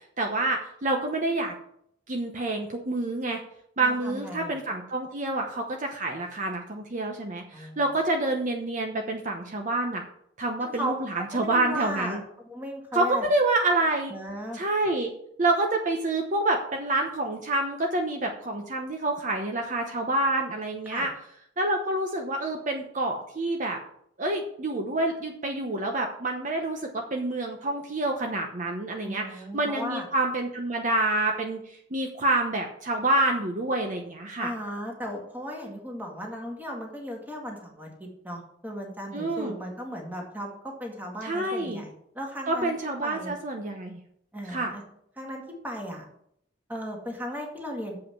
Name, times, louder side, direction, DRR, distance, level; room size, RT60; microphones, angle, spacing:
voice 1, 0.2-1.5 2.1-3.4 3.8-10.0 10.4-12.2 12.9-14.1 14.5-15.1 15.4-21.1 21.6-23.8 24.2-29.2 29.5-34.5 39.1-39.6 41.2-41.8 42.5-44.0 44.5-44.7, right 2 dB, 45° right, 2 dB, 0.9 m, -27 dB
voice 2, 3.8-4.6 7.5-7.8 10.6-12.2 12.5-13.2 14.1-14.6 20.9-21.1 29.0-30.1 34.4-42.7 43.0-43.3 44.3-44.8 45.2-46.1 46.7-48.0, equal, 10° right, 0 dB, 2.0 m, -36 dB
7.3 x 5.6 x 7.1 m, 0.71 s
head